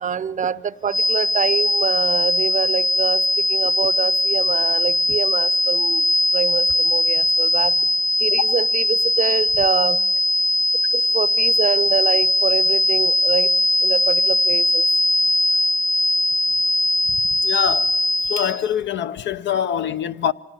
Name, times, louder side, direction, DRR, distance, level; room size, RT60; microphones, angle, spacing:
voice 1, 0.0-3.2 3.5-6.0 6.3-7.7 8.2-10.0 10.9-13.5 13.8-14.8, right 7 dB, 40° right, 0.6 m, -25 dB
sound 1, 0.9-18.6, left 1 dB, 20° left, 0.7 m, -19 dB
voice 2, 17.4-18.0 18.2-20.3, left 9 dB, 65° left, 0.8 m, -24 dB
26.0 x 18.5 x 7.0 m
cardioid pair, 90°, 20 cm